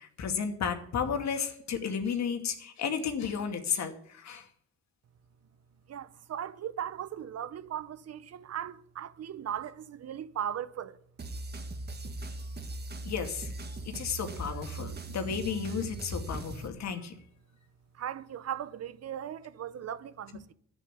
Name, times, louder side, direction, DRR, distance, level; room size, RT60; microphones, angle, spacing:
voice 1, 0.0-4.5 13.0-13.5 13.9-17.2, left 6 dB, 65° left, 2.3 m, -33 dB
voice 2, 5.9-11.0 17.9-20.5, right 9 dB, 55° right, 0.9 m, -38 dB
sound 1, 11.2-16.7, right 3 dB, 35° right, 1.9 m, -40 dB
11.0 x 8.9 x 8.3 m
cardioid pair, 90°, 30 cm